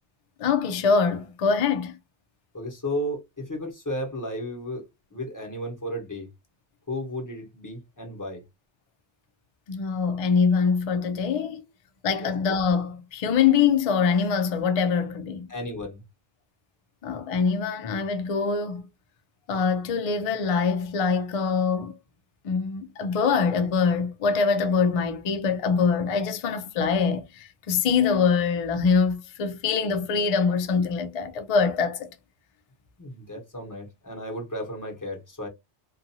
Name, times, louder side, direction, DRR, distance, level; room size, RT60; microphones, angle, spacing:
voice 1, 0.4-2.0 9.7-11.6 12.0-15.5 17.0-18.9 19.5-22.0 22.4-32.1, left 5 dB, 65° left, 0.3 m, -24 dB
voice 2, 2.5-4.8 5.1-6.3 6.9-8.4 12.2-12.3 15.5-16.0 33.0-35.5, equal, 20° left, 0.9 m, -34 dB
2.5 x 2.3 x 2.6 m
omnidirectional pair, 1.2 m